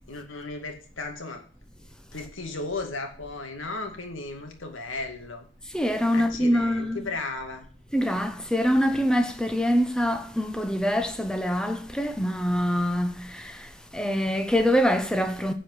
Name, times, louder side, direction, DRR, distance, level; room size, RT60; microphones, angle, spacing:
voice 1, 0.1-1.4 2.1-5.5 6.1-7.7, left 3 dB, 85° left, 2.2 m, -35 dB
voice 2, 5.7-7.1 7.9-15.5, equal, 5° left, 1.0 m, -25 dB
10.5 x 5.1 x 8.1 m
head